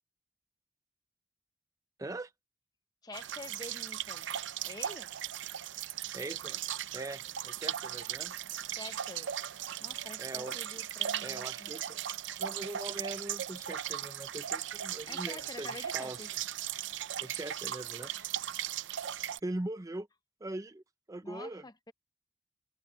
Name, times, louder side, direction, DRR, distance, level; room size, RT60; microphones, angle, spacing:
voice 1, 2.0-2.3 6.1-6.6 6.9-8.3 10.2-10.6 11.2-12.0 12.4-16.4 17.2-18.3 19.4-20.1 20.4-20.8 21.1-21.6, right 2 dB, 20° right, 0.6 m, -41 dB
voice 2, 3.0-4.3 4.6-5.1 8.7-9.3 9.8-11.7 15.1-16.3 21.2-21.9, left 2 dB, 20° left, 0.8 m, -47 dB
sound 1, 3.1-19.4, right 11 dB, 80° right, 0.5 m, -38 dB
head